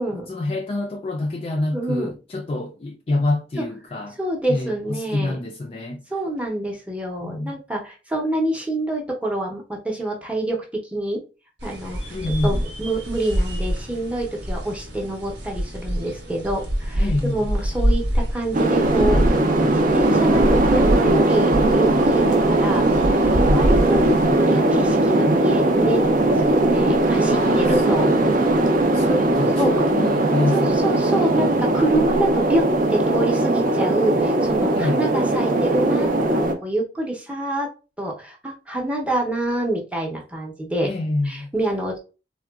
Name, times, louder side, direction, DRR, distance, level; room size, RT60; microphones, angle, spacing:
voice 1, 0.3-4.2 4.5-6.0 7.2-7.5 12.1-12.6 17.0-17.4 23.4-23.6 27.3-27.7 28.1-28.6 28.9-31.7 34.8-35.2 40.8-41.5, left 2 dB, 35° left, 0.3 m, -27 dB
voice 2, 1.7-2.1 3.6-3.7 4.2-5.4 6.1-11.2 11.6-22.8 23.2-28.1 29.0-29.9 30.5-37.7 38.0-40.9 41.2-42.0, right 1 dB, 5° right, 0.6 m, -26 dB
sound 1, 11.6-24.3, equal, 90° right, 0.9 m, -26 dB
sound 2, 18.5-36.5, right 2 dB, 50° right, 0.5 m, -19 dB
3.6 x 2.2 x 2.3 m
head